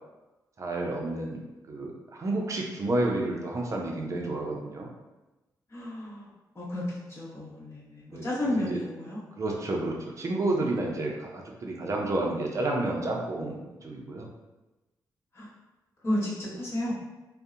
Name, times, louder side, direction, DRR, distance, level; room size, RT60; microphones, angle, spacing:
voice 1, 0.6-1.4 1.7-4.9 8.1-8.8 9.4-11.3 11.6-14.3, right 2 dB, 45° right, 0 dB, 0.5 m, -30 dB
voice 2, 5.7-6.3 6.5-9.2 15.3-15.5 16.0-16.9, left 1 dB, 35° left, -9 dB, 1.1 m, -32 dB
2.7 x 2.1 x 2.4 m, 1.1 s
cardioid pair, 90°, 8 cm